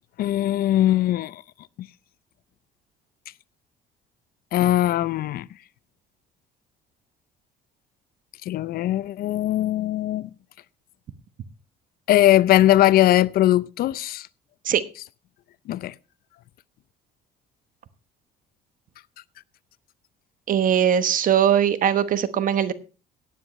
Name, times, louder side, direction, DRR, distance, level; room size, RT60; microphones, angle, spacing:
voice 1, 0.2-1.4 4.5-5.5 8.5-10.3 12.1-14.3 15.7-15.9, left 13 dB, 60° left, 0.5 m, -20 dB
voice 2, 20.5-22.7, right 9 dB, 55° right, 1.1 m, -20 dB
17.5 x 9.2 x 3.1 m
cardioid pair, 110°, 17 cm